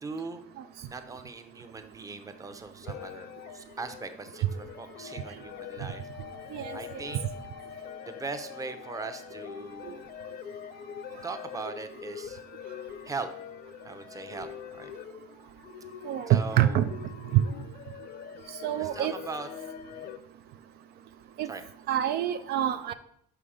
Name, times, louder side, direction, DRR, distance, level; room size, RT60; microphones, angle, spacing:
voice 1, 0.0-0.4 0.9-3.3 3.5-6.0 6.7-7.2 8.0-10.1 11.2-12.4 13.0-13.3 13.8-14.5 14.8-14.9 16.3-16.8 18.8-19.5 19.9-20.1 21.5-21.6, right 4 dB, 20° right, 9 dB, 0.7 m, -39 dB
sound 1, 2.8-20.2, left 9 dB, 70° left, 0.6 m, -44 dB
voice 2, 6.5-7.0 9.9-10.0 16.0-16.9 17.3-17.4 18.6-19.1 21.4-21.5 21.9-22.9, right 12 dB, 70° right, 10 dB, 0.4 m, -26 dB
5.7 x 5.5 x 4.9 m, 0.70 s
cardioid pair, 110°, 17 cm